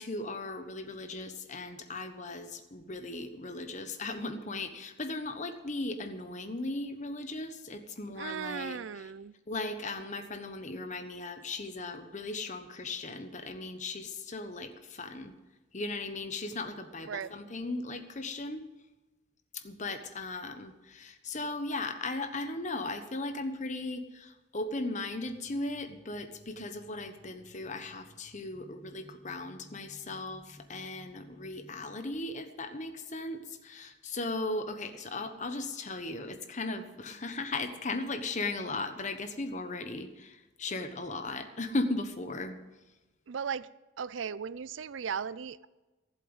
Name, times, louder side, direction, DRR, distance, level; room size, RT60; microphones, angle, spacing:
voice 1, 0.0-8.8 9.5-15.3 15.7-18.6 19.5-42.6, left 2 dB, 40° left, 1.2 m, -37 dB
voice 2, 8.2-9.3 17.1-17.4 43.3-43.7 44.0-45.7, right 7 dB, 80° right, 0.4 m, -37 dB
sound 1, 25.1-31.9, left 1 dB, 20° right, 4.4 m, -57 dB
15.0 x 7.8 x 8.0 m
head